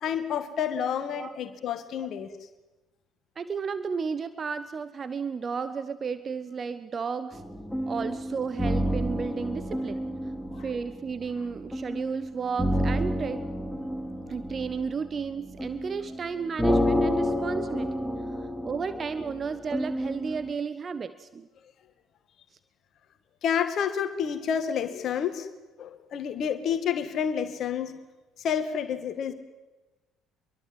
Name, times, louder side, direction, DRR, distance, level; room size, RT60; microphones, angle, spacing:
voice 1, 0.0-2.3 10.5-10.7 23.4-25.5 25.8-28.0 28.4-29.3, left 8 dB, 50° left, 9 dB, 2.2 m, -29 dB
voice 2, 3.4-7.4 7.9-10.0 10.6-13.4 14.3-17.9 18.6-21.5, right 5 dB, 35° right, 13 dB, 1.1 m, -33 dB
sound 1, 7.3-20.5, equal, 5° left, 2.6 m, -30 dB
25.5 x 22.5 x 7.6 m, 1.1 s
figure-of-eight pair, 50°, 0 cm